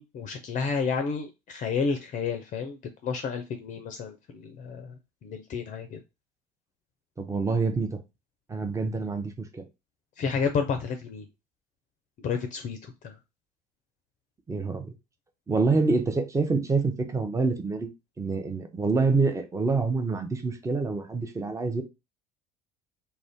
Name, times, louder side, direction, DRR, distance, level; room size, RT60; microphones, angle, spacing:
voice 1, 0.0-2.8 3.0-4.9 5.2-6.0 10.2-11.2 12.2-13.1, left 5 dB, 40° left, 0.5 m, -31 dB
voice 2, 7.2-8.0 8.5-9.6 14.5-14.9 15.5-17.9 18.2-21.8, right 4 dB, 15° right, 0.7 m, -26 dB
2.4 x 2.2 x 3.5 m
hypercardioid pair, 65°, 20 cm